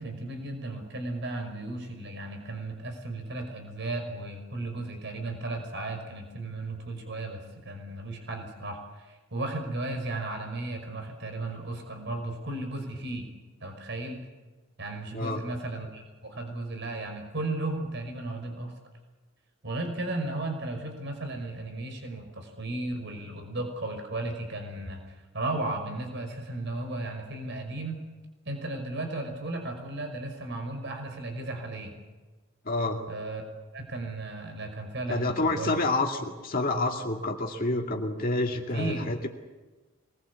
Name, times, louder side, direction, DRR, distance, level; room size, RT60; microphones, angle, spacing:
voice 1, 0.0-13.3 13.6-14.2 14.8-18.7 19.6-28.0 28.5-31.9 33.1-33.4 33.7-35.8 38.7-39.1, right 2 dB, 55° right, 5 dB, 5.6 m, -35 dB
voice 2, 32.7-33.0 35.1-39.3, left 2 dB, 45° left, 1 dB, 2.4 m, -28 dB
25.0 x 20.5 x 8.5 m, 1.2 s
head